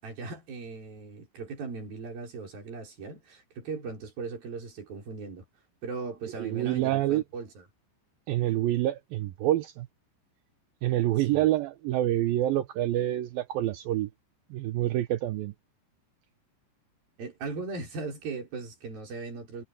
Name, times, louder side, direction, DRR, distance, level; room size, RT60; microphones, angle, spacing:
voice 1, 0.0-5.4 5.8-7.6 11.3-11.4 17.2-19.6, right 4 dB, 55° right, 7.4 m, -38 dB
voice 2, 6.3-7.2 8.3-9.9 10.8-14.1 14.5-15.5, right 14 dB, 80° right, 2.1 m, -27 dB
omnidirectional pair, 5.0 m